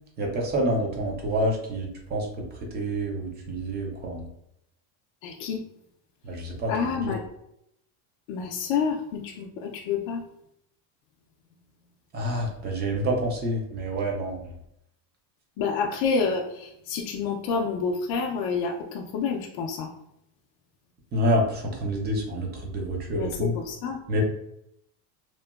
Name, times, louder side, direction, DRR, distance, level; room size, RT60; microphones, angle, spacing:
voice 1, 0.2-2.3 2.7-4.2 6.2-7.1 12.1-14.5 21.1-23.6 24.1-24.2, right 1 dB, 25° right, 0 dB, 0.3 m, -28 dB
voice 2, 5.2-5.6 6.7-7.2 8.3-10.2 15.6-19.9 23.1-24.0, left 5 dB, 55° left, 0 dB, 0.5 m, -28 dB
2.9 x 2.1 x 2.2 m, 0.76 s
cardioid pair, 140°, 48 cm